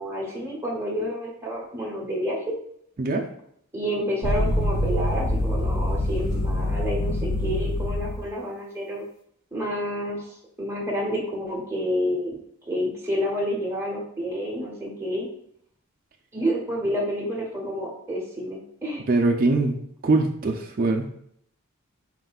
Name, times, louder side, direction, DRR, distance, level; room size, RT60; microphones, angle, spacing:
voice 1, 0.0-2.5 3.7-9.0 9.5-12.4 12.7-15.3 16.3-19.0, equal, 10° right, -4 dB, 1.0 m, -29 dB
sound 1, 4.2-8.2, left 1 dB, 70° left, 1.0 m, -25 dB
voice 2, 19.1-19.8 20.0-21.2, right 3 dB, 40° right, 2 dB, 0.4 m, -22 dB
4.3 x 3.8 x 2.4 m, 0.67 s
head